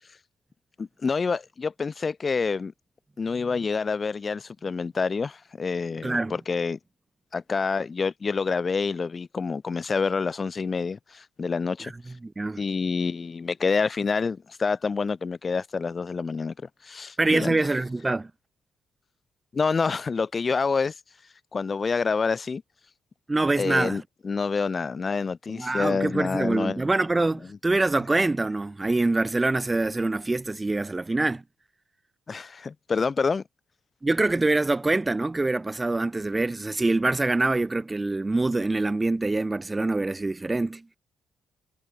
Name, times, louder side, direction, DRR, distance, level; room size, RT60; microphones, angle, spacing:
voice 1, 0.8-2.7 3.2-6.8 7.3-11.9 12.6-16.5 16.8-17.6 19.5-20.9 21.5-22.6 23.6-26.8 32.3-33.4, left 5 dB, 35° left, 4.1 m, -27 dB
voice 2, 6.0-6.4 11.8-11.9 12.2-12.6 17.2-18.3 23.3-24.0 25.5-31.4 34.0-40.8, right 2 dB, 20° right, 2.9 m, -25 dB
cardioid pair, 90°, 0 cm